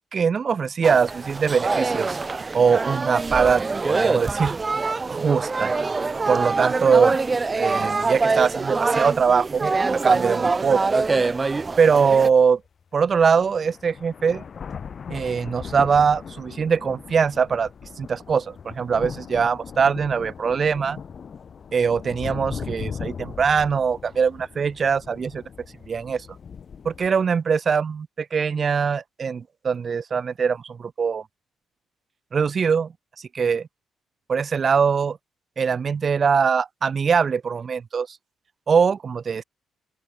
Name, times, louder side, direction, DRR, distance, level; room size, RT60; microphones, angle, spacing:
voice 1, 0.1-2.2 2.5-3.6 3.9-4.6 5.1-5.7 6.3-7.2 7.6-9.8 10.0-11.0 11.8-12.6 12.9-14.4 15.1-17.7 18.0-21.0 21.7-25.4 25.9-26.3 26.8-31.2 32.3-32.9 33.2-33.7 34.3-35.2 35.6-38.2 38.7-39.4, right 6 dB, 45° right, 0.6 m, -22 dB
sound 1, 0.8-12.3, right 3 dB, 25° right, 1.6 m, -24 dB
sound 2, 12.7-12.8 13.1-27.1, left 6 dB, 45° left, 2.9 m, -38 dB
open air
cardioid pair, 90°, 0 cm